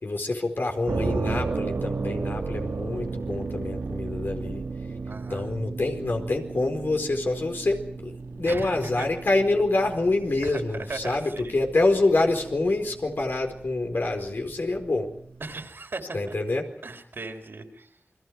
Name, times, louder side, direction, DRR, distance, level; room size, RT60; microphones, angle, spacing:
voice 1, 0.0-4.6 5.3-15.1 16.1-16.7, left 2 dB, 65° left, 4 dB, 4.5 m, -26 dB
sound 1, 0.9-15.7, right 4 dB, 90° right, 1.5 m, -35 dB
voice 2, 5.1-5.4 8.4-9.1 10.4-11.6 15.4-16.3 16.8-17.9, right 3 dB, 70° right, 3 dB, 4.1 m, -37 dB
28.5 x 23.5 x 4.8 m, 0.66 s
wide cardioid pair, 90°, 4 cm